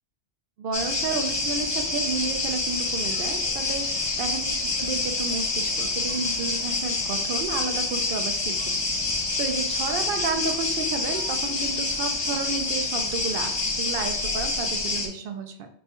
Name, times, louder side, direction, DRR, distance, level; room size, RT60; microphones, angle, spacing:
voice 1, 0.6-8.7 9.4-15.7, right 4 dB, 60° right, 6 dB, 0.6 m, -32 dB
sound 1, 0.7-15.1, left 3 dB, 35° left, 0.4 m, -27 dB
5.3 x 2.2 x 2.9 m, 0.64 s
omnidirectional pair, 1.2 m